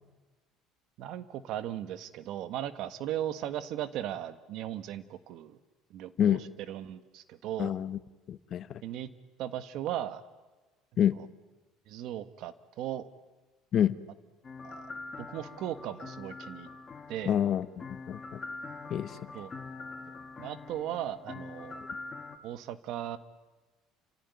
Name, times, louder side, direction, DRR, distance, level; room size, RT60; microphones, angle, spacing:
voice 1, 1.0-5.6 5.9-6.4 6.7-7.8 8.8-9.1 9.4-10.2 11.2-11.3 11.9-13.1 14.6-14.9 15.2-16.7 17.1-17.4 19.3-19.5 20.4-21.8 22.4-23.2, right 11 dB, 65° right, 12 dB, 1.5 m, -37 dB
voice 2, 7.6-8.0 8.3-8.8 11.0-11.2 13.7-13.9 17.3-17.6 17.9-18.4 18.9-19.2, left 10 dB, 50° left, 13 dB, 1.2 m, -27 dB
sound 1, 14.4-22.4, left 3 dB, 30° left, 2.3 m, -44 dB
30.0 x 16.5 x 9.6 m, 1.2 s
supercardioid pair, 105°, 0 cm